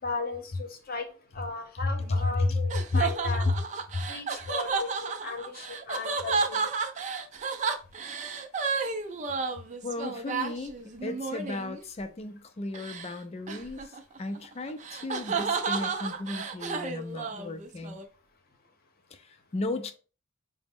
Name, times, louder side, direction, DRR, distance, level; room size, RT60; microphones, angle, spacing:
voice 1, 0.0-1.1 1.3-3.4 4.1-6.7, left 3 dB, 45° left, 0.8 m, -36 dB
voice 2, 1.8-3.1 3.4-3.6 3.9-4.1 9.8-10.7 11.0-18.0 19.1-19.9, left 2 dB, 30° left, 0.4 m, -32 dB
sound 1, 2.0-11.8 12.7-13.1 13.5-18.0, right 5 dB, 35° right, 0.4 m, -32 dB
4.8 x 2.0 x 3.5 m
head